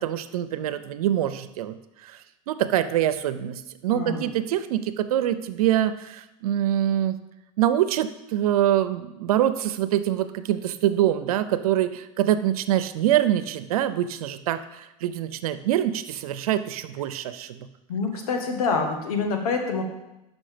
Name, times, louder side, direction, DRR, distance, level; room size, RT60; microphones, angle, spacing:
voice 1, 0.0-7.2 7.6-17.7, right 11 dB, 90° right, 11 dB, 0.6 m, -25 dB
voice 2, 3.9-4.3 17.9-19.8, left 4 dB, 85° left, 4 dB, 1.4 m, -26 dB
6.2 x 5.2 x 5.0 m, 0.92 s
supercardioid pair, 115°, 18 cm